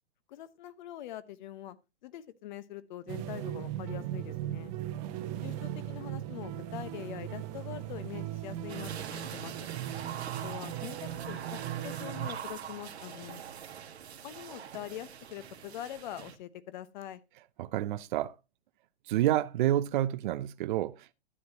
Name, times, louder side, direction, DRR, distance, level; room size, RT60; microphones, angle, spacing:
voice 1, 0.3-1.8 2.0-4.7 5.4-9.7 10.4-13.4 14.2-17.2, left 12 dB, 50° left, 1.0 m, -43 dB
sound 1, 3.1-12.3, right 12 dB, 30° right, 1.1 m, -38 dB
sound 2, 8.7-16.3, right 8 dB, 85° right, 1.6 m, -43 dB
voice 2, 17.6-18.3 19.1-21.1, right 13 dB, 50° right, 0.5 m, -29 dB
12.0 x 8.0 x 2.8 m
hypercardioid pair, 140°, 31 cm